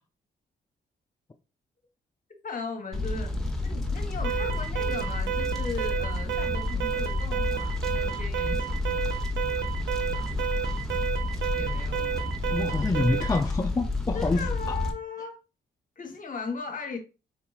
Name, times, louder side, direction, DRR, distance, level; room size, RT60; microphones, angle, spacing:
voice 1, 2.4-3.3 3.6-9.1 11.5-12.3 14.1-15.4 16.0-17.0, left 4 dB, 45° left, 1.0 m, -37 dB
Fire, 2.9-14.9, left 2 dB, ahead, 0.8 m, -30 dB
Alarm, 4.2-13.4, right 10 dB, 75° right, 0.5 m, -31 dB
voice 2, 12.5-14.8, left 3 dB, 20° left, 0.4 m, -27 dB
3.8 x 3.0 x 2.3 m
cardioid pair, 65°, 20 cm